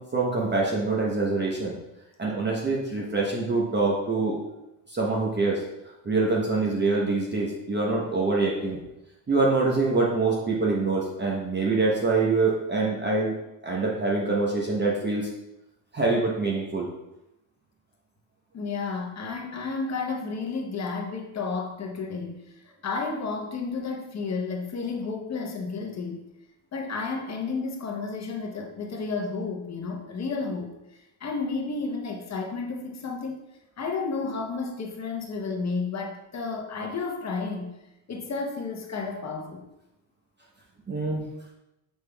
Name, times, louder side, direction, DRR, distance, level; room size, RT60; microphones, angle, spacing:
voice 1, 0.0-1.8 2.2-4.4 4.9-5.6 6.0-8.8 9.3-13.3 13.6-15.3 15.9-16.9 40.9-41.2, right 3 dB, 20° right, -2 dB, 0.8 m, -25 dB
voice 2, 18.5-22.5 22.8-26.2 26.7-30.7 31.2-33.4 33.8-37.7 38.1-39.6, left 4 dB, 35° left, 2 dB, 0.8 m, -32 dB
6.4 x 3.3 x 2.3 m, 0.91 s
supercardioid pair, 90°, 49 cm